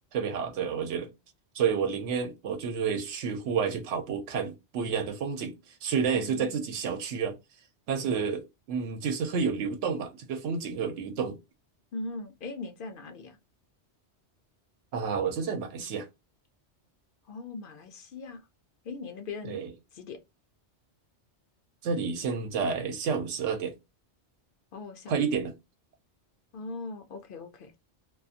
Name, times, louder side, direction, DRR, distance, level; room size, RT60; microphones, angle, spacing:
voice 1, 0.1-1.1 1.5-7.4 7.9-11.4 14.9-16.1 19.5-19.7 21.8-23.7 25.1-25.5, right 6 dB, 85° right, 0.9 m, -30 dB
voice 2, 6.1-6.8 11.9-13.4 17.3-18.4 18.8-19.6 19.9-20.2 24.7-25.2 26.5-27.7, left 3 dB, 60° left, 0.6 m, -40 dB
2.4 x 2.3 x 2.6 m
omnidirectional pair, 1.2 m